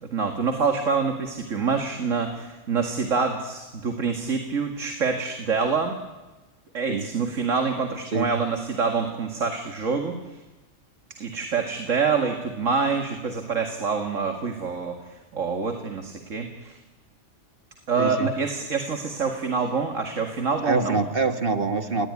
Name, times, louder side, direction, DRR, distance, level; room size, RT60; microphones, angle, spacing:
voice 1, 0.0-5.9 6.7-10.2 11.2-16.8 17.9-21.0, right 5 dB, 90° right, 4 dB, 2.4 m, -26 dB
voice 2, 18.0-18.3 20.6-22.1, right 3 dB, 45° right, 7 dB, 2.0 m, -25 dB
28.5 x 20.0 x 9.7 m, 1.1 s
omnidirectional pair, 1.3 m